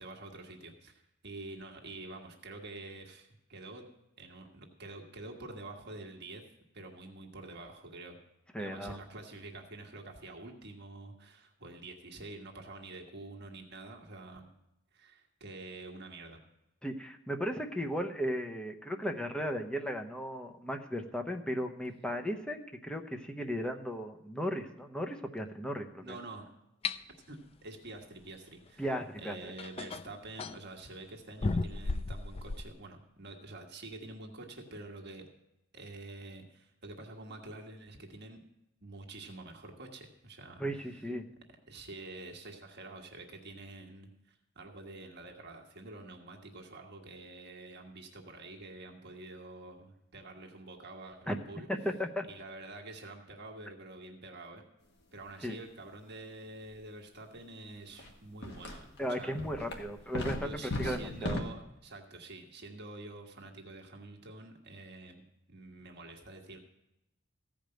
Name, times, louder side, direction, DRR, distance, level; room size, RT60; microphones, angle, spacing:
voice 1, 0.0-3.9 4.2-6.4 6.7-8.2 8.6-14.5 14.9-16.4 26.0-26.4 27.3-28.9 29.2-35.2 35.7-38.4 38.8-41.1 41.7-51.7 52.3-54.6 55.1-59.7 60.4-66.6, right 2 dB, 55° right, 1 dB, 1.5 m, -47 dB
voice 2, 8.5-9.0 16.8-26.2 28.8-29.5 40.6-41.2 51.3-51.4 51.7-52.3 55.4-55.6 59.0-61.4, equal, 5° left, 4 dB, 0.8 m, -36 dB
sound 1, 26.8-27.0 28.9-29.0 29.6-30.6 31.4-32.7, left 3 dB, 30° left, 0.3 m, -34 dB
sound 2, 58.0-58.1 58.4-59.0 59.4-61.4, left 1 dB, 55° left, 1.5 m, -37 dB
15.0 x 5.1 x 7.7 m, 0.87 s
head